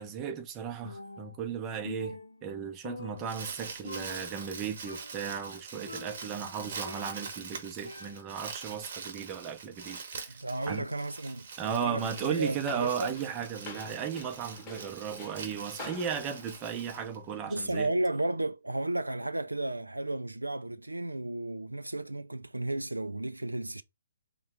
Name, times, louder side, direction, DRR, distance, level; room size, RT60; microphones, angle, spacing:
voice 1, 0.0-10.3 10.7-10.9 11.6-17.9, right 7 dB, 20° right, 0.7 m, -36 dB
Percussion, 0.9-1.5 1.9-3.6 3.9-4.6 4.9-5.4 5.9-7.4 7.9-8.5, left 2 dB, 75° left, 0.5 m, -45 dB
Crumpling crinkling, 3.0-17.6, right 5 dB, 50° right, 0.9 m, -44 dB
voice 2, 10.3-13.1 17.5-23.8, right 2 dB, 80° right, 0.3 m, -33 dB
sound 1, 12.0-17.1, left 3 dB, 20° left, 1.0 m, -48 dB
3.6 x 2.3 x 4.4 m
figure-of-eight pair, 130°, 0 cm